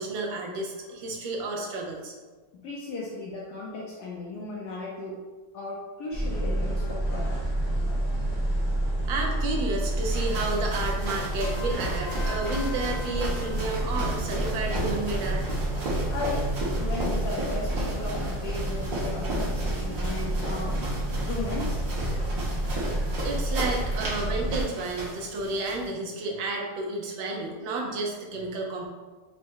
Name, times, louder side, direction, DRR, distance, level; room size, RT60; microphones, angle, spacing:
voice 1, 0.0-2.1 7.8-8.0 8.6-15.4 22.9-28.9, right 2 dB, 85° right, 0 dB, 1.5 m, -31 dB
voice 2, 2.5-5.2 5.5-7.3 16.1-16.5 16.8-20.8 21.2-21.9, left 3 dB, 70° left, -4 dB, 1.1 m, -36 dB
sound 1, 6.1-24.6, right 1 dB, 25° right, 0.9 m, -29 dB
sound 2, 9.8-25.9, equal, 70° right, 1.8 m, -35 dB
Trumpet, 11.4-13.7, left 4 dB, 85° left, 1.5 m, -41 dB
4.6 x 2.1 x 4.5 m, 1.3 s
omnidirectional pair, 2.1 m